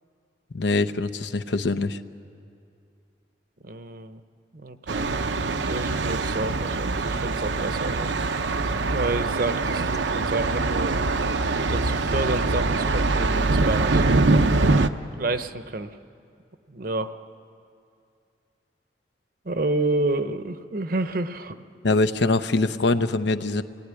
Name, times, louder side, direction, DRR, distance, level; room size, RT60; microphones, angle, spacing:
voice 1, 0.5-2.0 21.8-23.6, left 3 dB, 75° left, 10 dB, 0.8 m, -23 dB
voice 2, 3.6-4.2 4.5-5.1 5.5-8.1 8.9-11.0 11.7-14.1 15.1-16.0 16.7-17.1 19.4-21.6, right 2 dB, 50° right, 10 dB, 0.9 m, -29 dB
Thunder, 4.9-14.9, right 3 dB, 80° right, 0.8 m, -23 dB
25.5 x 19.0 x 9.9 m, 2.5 s
head